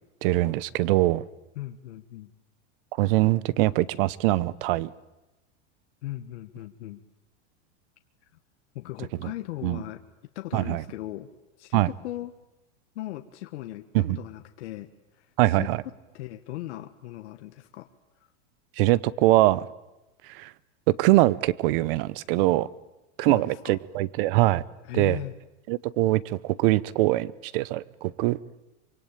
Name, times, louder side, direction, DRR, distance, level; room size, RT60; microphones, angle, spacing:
voice 1, 0.2-1.2 3.0-4.9 9.6-9.8 10.5-10.8 11.7-11.9 13.9-14.2 15.4-15.8 18.8-19.7 20.3-20.5 21.0-22.7 23.2-24.6 24.9-25.2 25.7-28.4, right 18 dB, 50° right, 20 dB, 1.0 m, -23 dB
voice 2, 1.5-2.3 6.0-7.0 8.7-10.0 10.3-11.3 11.6-12.3 12.9-14.9 15.1-17.9 23.2-23.8 24.8-25.3, left 15 dB, 70° left, 7 dB, 1.5 m, -38 dB
25.5 x 24.0 x 9.0 m, 1.0 s
supercardioid pair, 145°, 35 cm